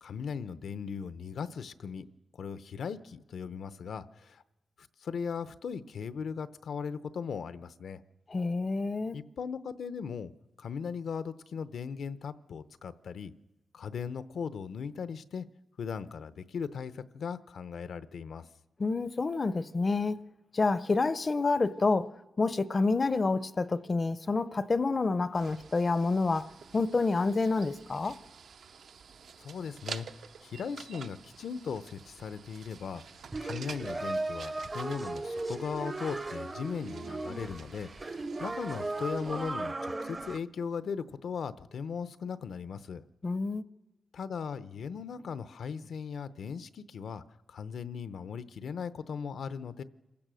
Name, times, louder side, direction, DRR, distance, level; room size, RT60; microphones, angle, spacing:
voice 1, 0.0-2.0 2.4-4.4 4.8-8.0 9.1-10.3 10.6-13.3 13.7-15.5 15.8-18.5 29.4-43.0 44.1-49.8, left 6 dB, 75° left, 0.8 m, -38 dB
voice 2, 8.3-9.2 18.8-20.2 20.5-22.1 22.4-28.2 43.2-43.6, left 3 dB, 30° left, 0.6 m, -28 dB
sound 1, 25.3-39.5, right 6 dB, 70° right, 0.7 m, -49 dB
sound 2, 33.3-40.4, right 2 dB, 20° right, 0.6 m, -37 dB
27.0 x 16.0 x 6.3 m
wide cardioid pair, 165°, 0 cm